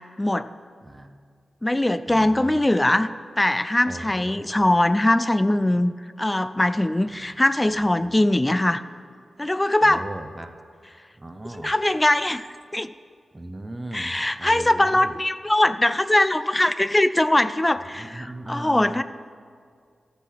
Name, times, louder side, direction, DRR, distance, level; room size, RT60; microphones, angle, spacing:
voice 1, 0.8-1.2 2.1-2.6 3.9-4.5 7.2-7.3 8.0-8.1 9.8-10.5 11.2-11.7 13.3-15.1 18.0-19.0, right 1 dB, 25° right, 7 dB, 0.8 m, -38 dB
voice 2, 1.6-3.1 3.4-5.9 6.2-8.8 9.4-10.0 11.5-12.5 12.7-12.9 13.9-19.0, left 1 dB, 20° left, 13 dB, 0.4 m, -21 dB
13.5 x 6.9 x 4.7 m, 2.1 s
cardioid pair, 45°, 0 cm